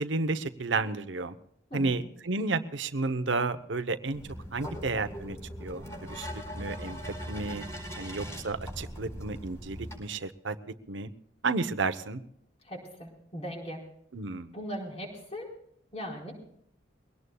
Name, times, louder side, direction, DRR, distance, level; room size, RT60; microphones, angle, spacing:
voice 1, 0.0-1.4 1.7-4.2 4.5-7.0 7.3-7.6 8.0-10.6 10.9-11.1 11.4-12.2 14.1-14.5, right 3 dB, 85° right, 11 dB, 0.9 m, -32 dB
sound 1, 4.1-10.0, equal, 15° left, 4.6 m, -40 dB
voice 2, 12.6-13.8 14.5-15.5 15.9-16.3, equal, 35° left, 0 dB, 4.4 m, -39 dB
22.5 x 18.0 x 2.3 m, 0.72 s
head